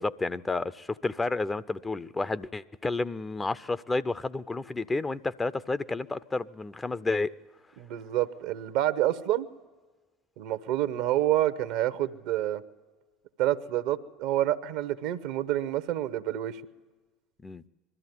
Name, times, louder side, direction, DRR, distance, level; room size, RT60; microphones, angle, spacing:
voice 1, 0.0-7.3 17.4-17.6, left 3 dB, 20° left, 0.6 m, -31 dB
voice 2, 7.8-9.5 10.4-12.6 13.4-16.6, right 13 dB, 65° right, 0.9 m, -28 dB
21.0 x 13.5 x 9.4 m
hypercardioid pair, 70°, 0 cm